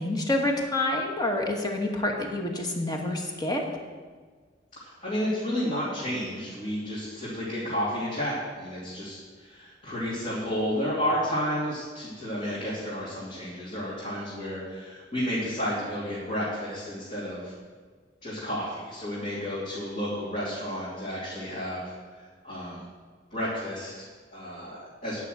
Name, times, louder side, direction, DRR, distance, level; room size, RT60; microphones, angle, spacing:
voice 1, 0.0-3.6, left 1 dB, 20° left, 2 dB, 1.3 m, -28 dB
voice 2, 4.8-17.5 18.2-21.9 22.4-22.8 23.3-25.2, equal, 40° left, -9 dB, 2.8 m, -31 dB
9.9 x 5.9 x 7.8 m, 1.5 s
head